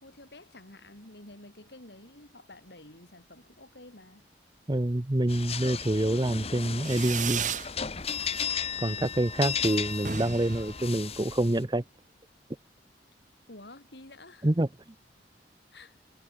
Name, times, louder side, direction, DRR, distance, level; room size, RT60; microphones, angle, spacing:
voice 1, 0.0-4.3 8.8-9.2 13.5-14.5 15.7-16.0, left 2 dB, 70° left, 4.2 m, -50 dB
voice 2, 4.7-7.5 8.8-11.8 14.4-14.7, right 1 dB, 25° right, 0.9 m, -26 dB
sound 1, 5.3-11.6, left 7 dB, 35° left, 1.2 m, -35 dB
Fireworks, 6.8-7.7 8.1-8.6 8.9-9.0 9.2-9.4 9.6-9.7 9.9-11.6, right 7 dB, 45° right, 2.7 m, -35 dB
head